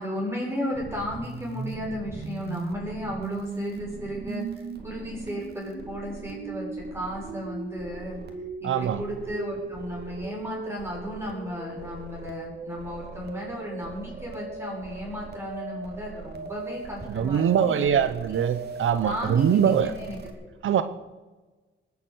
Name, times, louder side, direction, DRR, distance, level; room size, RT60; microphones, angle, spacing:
voice 1, 0.0-8.2 8.6-18.4 19.0-20.5, equal, 10° right, -3 dB, 6.7 m, -34 dB
sound 1, 0.7-20.3, right 4 dB, 55° right, 2.6 m, -38 dB
voice 2, 8.6-9.0 17.1-19.9 20.6-20.8, right 8 dB, 75° right, 11 dB, 0.9 m, -23 dB
19.5 x 8.3 x 8.4 m, 1.2 s
cardioid pair, 105°, 21 cm